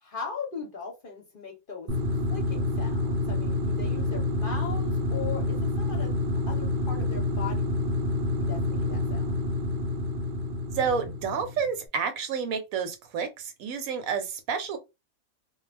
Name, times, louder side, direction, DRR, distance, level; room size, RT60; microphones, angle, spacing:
voice 1, 0.0-6.1 6.5-7.7 8.4-9.3, left 5 dB, 45° left, 0.8 m, -39 dB
sound 1, 1.9-11.7, left 2 dB, 60° right, 0.5 m, -28 dB
voice 2, 10.7-14.8, right 6 dB, 75° right, 1.0 m, -30 dB
2.3 x 2.3 x 3.2 m
omnidirectional pair, 1.5 m